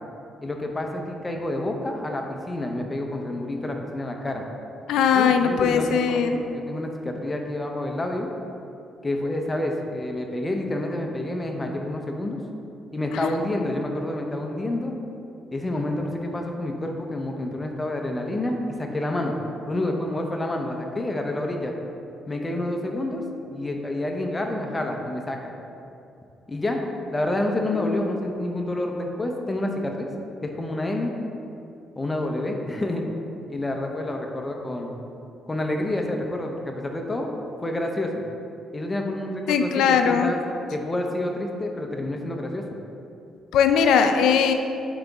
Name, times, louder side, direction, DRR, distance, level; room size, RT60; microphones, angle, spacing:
voice 1, 0.4-4.4 5.1-6.2 6.5-8.3 9.0-12.4 12.9-14.9 15.5-19.4 19.7-21.7 22.3-23.3 23.5-25.5 26.5-26.8 27.1-30.1 30.4-31.1 32.0-33.0 33.5-35.0 35.5-37.3 37.6-38.2 38.7-40.4 40.7-42.6, left 1 dB, 20° left, 2 dB, 0.8 m, -28 dB
voice 2, 4.9-6.4 13.1-13.3 27.7-28.0 39.5-40.3 43.5-44.5, left 7 dB, 85° left, 6 dB, 0.5 m, -20 dB
8.7 x 4.1 x 3.5 m, 2.7 s
cardioid pair, 90°, 0 cm